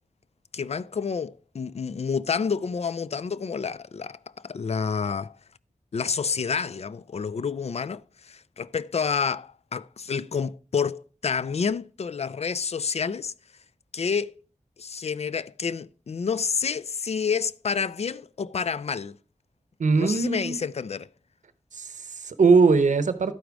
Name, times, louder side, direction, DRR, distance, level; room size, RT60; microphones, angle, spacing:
voice 1, 0.5-4.2 4.4-5.3 5.9-13.3 13.9-14.4 14.8-19.2 20.0-21.1, left 6 dB, 55° left, 0.4 m, -29 dB
voice 2, 19.8-20.6 21.7-23.3, right 4 dB, 80° right, 0.7 m, -21 dB
11.5 x 4.7 x 5.0 m
wide cardioid pair, 55°, 13 cm